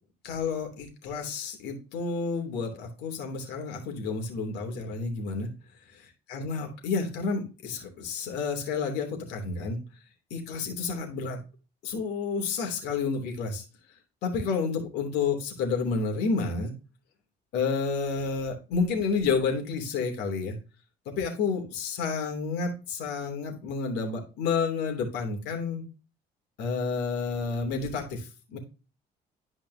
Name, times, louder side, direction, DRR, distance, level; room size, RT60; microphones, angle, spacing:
voice 1, 0.2-5.5 6.3-9.8 10.3-11.4 11.8-13.6 14.2-16.7 17.5-20.6 21.0-25.8 26.6-28.6, left 4 dB, 85° left, 2 dB, 3.1 m, -30 dB
12.0 x 5.2 x 2.8 m, 0.32 s
cardioid pair, 110°, 17 cm